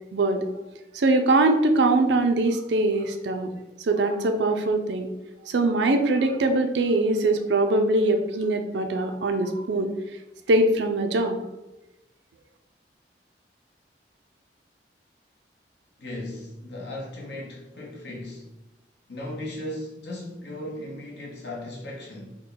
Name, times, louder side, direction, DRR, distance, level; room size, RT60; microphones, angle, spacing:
voice 1, 0.1-0.4 0.9-3.5 3.8-5.1 5.5-9.9 10.5-11.4, right 2 dB, 80° right, 6 dB, 0.5 m, -22 dB
voice 2, 16.0-18.5 19.1-22.4, left 1 dB, 75° left, -2 dB, 1.1 m, -37 dB
3.6 x 2.2 x 3.9 m, 0.95 s
head